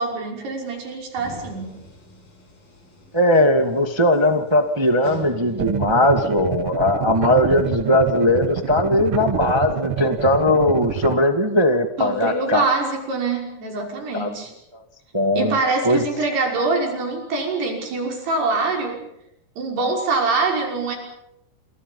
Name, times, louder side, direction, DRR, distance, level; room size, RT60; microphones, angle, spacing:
voice 1, 0.0-1.7 12.0-14.5 15.4-19.0 19.6-21.0, right 3 dB, 85° right, 1 dB, 7.9 m, -24 dB
sound 1, 1.2-6.4, left 1 dB, 65° left, 8.8 m, -44 dB
voice 2, 3.1-12.6 14.1-14.3 15.1-15.6 15.8-16.0, left 1 dB, 40° right, 5 dB, 0.3 m, -19 dB
sound 2, 5.6-11.1, right 8 dB, 70° right, 1.4 m, -27 dB
29.0 x 28.0 x 5.5 m, 0.78 s
omnidirectional pair, 4.5 m